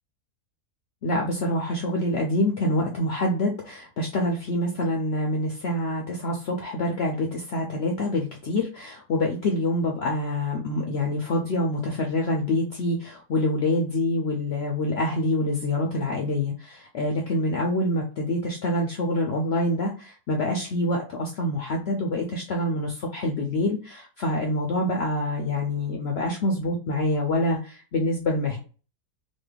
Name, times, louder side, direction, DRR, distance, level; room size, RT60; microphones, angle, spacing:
voice 1, 1.0-28.6, left 1 dB, 75° left, 1 dB, 0.6 m, -26 dB
3.1 x 2.2 x 3.2 m, 0.37 s
omnidirectional pair, 1.7 m